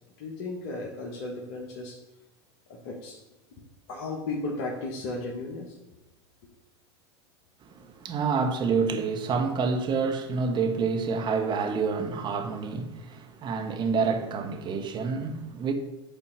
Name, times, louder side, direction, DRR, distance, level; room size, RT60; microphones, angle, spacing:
voice 1, 0.2-2.0 2.7-3.2 3.9-5.8, left 2 dB, 55° left, 1.5 m, -35 dB
voice 2, 7.6-15.7, right 5 dB, 30° right, 1.2 m, -28 dB
8.8 x 4.4 x 6.0 m
hypercardioid pair, 95°, 15 cm